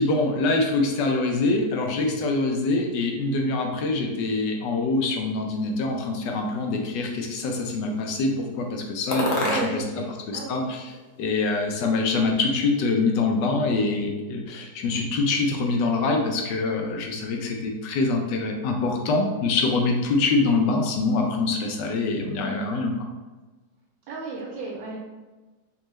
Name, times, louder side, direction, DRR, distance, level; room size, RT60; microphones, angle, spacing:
voice 1, 0.0-9.8 10.3-10.9 11.2-22.9, left 3 dB, 75° left, 2 dB, 1.2 m, -24 dB
sound 1, 5.9-6.9 7.6-8.2 9.1-10.0 10.3-11.4, left 1 dB, 55° left, 0.9 m, -31 dB
voice 2, 9.4-10.7 22.4-22.7 24.1-25.0, right 3 dB, 85° right, -3 dB, 1.3 m, -34 dB
3.5 x 2.9 x 3.1 m, 1.2 s
omnidirectional pair, 1.9 m